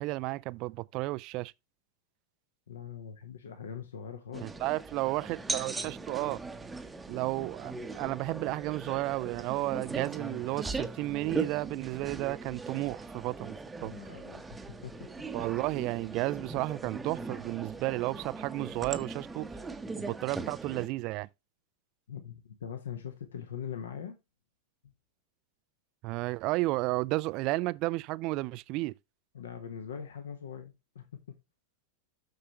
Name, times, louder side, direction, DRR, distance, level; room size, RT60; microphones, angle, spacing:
voice 1, 0.0-1.5 4.4-6.4 7.1-13.9 15.3-19.5 20.0-21.3 26.0-28.9, right 20 dB, 40° right, 0.3 m, -32 dB
voice 2, 2.7-4.5 13.8-15.1 22.1-24.2 24.8-24.9 29.3-31.2, left 8 dB, 65° left, 1.2 m, -42 dB
sound 1, 4.3-20.9, right 3 dB, 10° right, 0.8 m, -40 dB
7.7 x 6.6 x 3.1 m
figure-of-eight pair, 90°, 0 cm